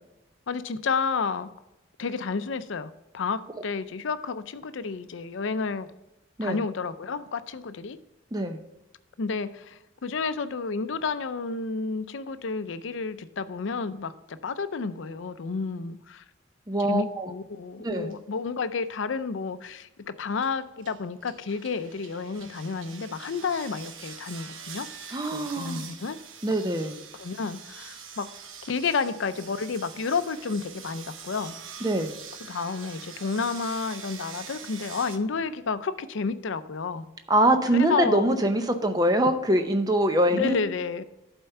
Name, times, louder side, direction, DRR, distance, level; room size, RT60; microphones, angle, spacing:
voice 1, 0.5-1.5 2.0-5.9 6.4-8.0 9.2-16.2 16.9-24.9 25.3-26.2 27.2-28.3 28.6-31.6 32.5-37.1 37.7-38.4 40.2-41.0, left 4 dB, 75° left, 12 dB, 0.5 m, -31 dB
voice 2, 8.3-8.6 16.7-17.3 17.8-18.1 25.1-25.8 26.4-26.9 31.8-32.1 37.3-40.6, right 1 dB, 20° right, 7 dB, 0.6 m, -24 dB
sound 1, 18.1-18.2 18.7-19.1 20.4-35.2, right 7 dB, 90° right, 0.9 m, -44 dB
11.5 x 4.5 x 5.6 m, 0.96 s
head